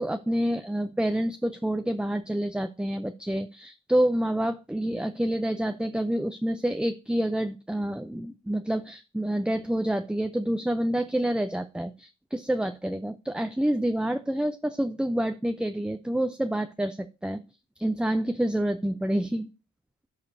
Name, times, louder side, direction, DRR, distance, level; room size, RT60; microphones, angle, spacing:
voice 1, 0.0-17.4 17.8-19.5, right 1 dB, 5° right, 8 dB, 0.5 m, -28 dB
14.5 x 4.9 x 2.7 m, 0.31 s
cardioid pair, 80°, 30 cm